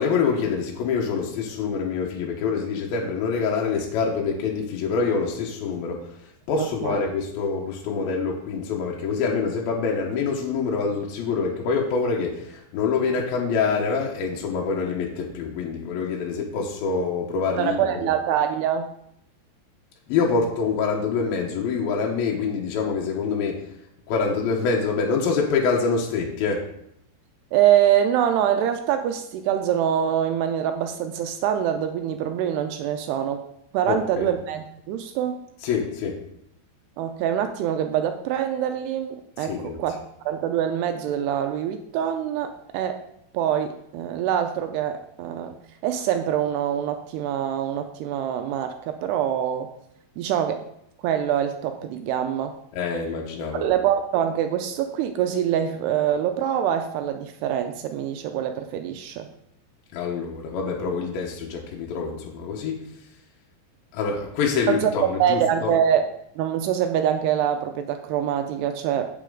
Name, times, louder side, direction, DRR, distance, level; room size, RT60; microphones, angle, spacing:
voice 1, 0.0-6.1 6.5-18.1 20.1-23.6 24.1-26.7 33.9-34.3 35.6-36.2 39.4-39.8 52.7-53.6 59.9-62.8 63.9-65.7, left 5 dB, 70° left, -1 dB, 2.5 m, -25 dB
voice 2, 6.6-7.0 17.6-18.9 27.5-33.4 33.7-35.4 37.0-40.0 40.3-43.0 43.3-45.6 45.8-49.7 50.2-50.7 51.0-52.5 53.5-59.3 64.7-64.9 65.2-66.0 66.4-69.1, right 10 dB, 85° right, 7 dB, 2.4 m, -24 dB
8.4 x 8.4 x 3.8 m, 0.74 s
omnidirectional pair, 5.2 m